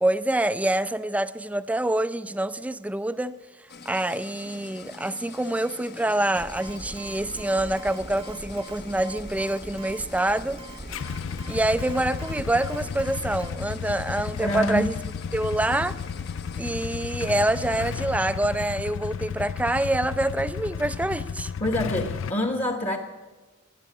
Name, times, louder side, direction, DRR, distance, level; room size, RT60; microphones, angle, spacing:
voice 1, 0.0-3.4 3.9-10.6 11.5-14.9 15.3-16.0 16.6-21.5, right 1 dB, 5° right, 0.4 m, -26 dB
sound 1, 3.7-17.9, left 5 dB, 55° left, 1.0 m, -45 dB
sound 2, 6.4-13.5, right 2 dB, 25° right, 0.8 m, -42 dB
Motorcycle / Engine starting / Idling, 10.9-22.3, left 6 dB, 70° left, 0.4 m, -33 dB
voice 2, 14.4-14.9 21.6-23.0, left 1 dB, 35° left, 1.2 m, -26 dB
13.5 x 9.4 x 9.7 m
head